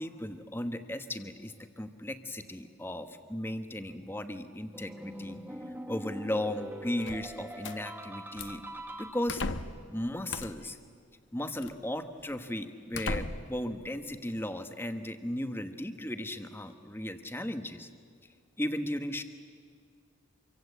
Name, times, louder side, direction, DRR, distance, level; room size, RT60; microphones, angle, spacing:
voice 1, 0.0-5.4 5.9-8.6 9.0-9.4 9.9-10.8 11.3-17.9 18.6-19.2, left 1 dB, 10° left, 8 dB, 1.2 m, -36 dB
sound 1, 4.7-9.7, right 1 dB, 10° right, 1.4 m, -43 dB
sound 2, 7.0-7.8 8.4-8.7 9.3-9.8 10.3-10.7 11.6-11.7 12.3-12.4 12.9-13.6, left 3 dB, 60° left, 1.0 m, -36 dB
26.5 x 24.5 x 8.2 m, 2.1 s
head